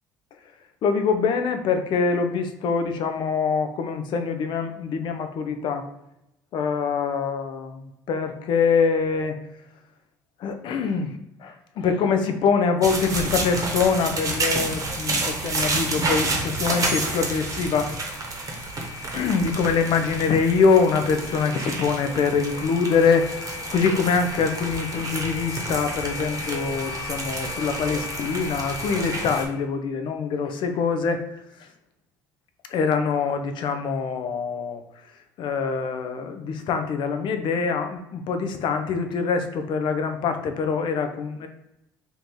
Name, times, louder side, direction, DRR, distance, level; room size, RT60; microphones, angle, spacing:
voice 1, 0.8-5.9 6.5-9.4 10.4-17.9 19.1-31.2 31.6-31.7 32.7-34.8 35.4-41.5, left 5 dB, 55° left, 7 dB, 0.6 m, -24 dB
sound 1, 12.8-29.5, right 2 dB, 35° right, 0.9 m, -29 dB
2.8 x 2.7 x 3.6 m, 0.85 s
hypercardioid pair, 70°, 9 cm